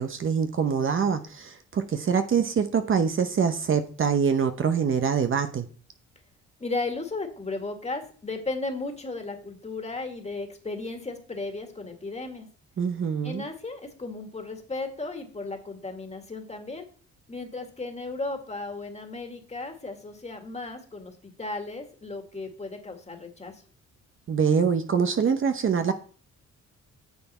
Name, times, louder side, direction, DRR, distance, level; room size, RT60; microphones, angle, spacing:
voice 1, 0.0-5.7 12.8-13.4 24.3-25.9, right 6 dB, 45° right, 8 dB, 0.9 m, -24 dB
voice 2, 6.6-12.5 13.2-16.9 17.3-23.6, left 3 dB, 20° left, 4 dB, 2.1 m, -35 dB
9.5 x 7.0 x 4.3 m, 0.42 s
cardioid pair, 90°, 30 cm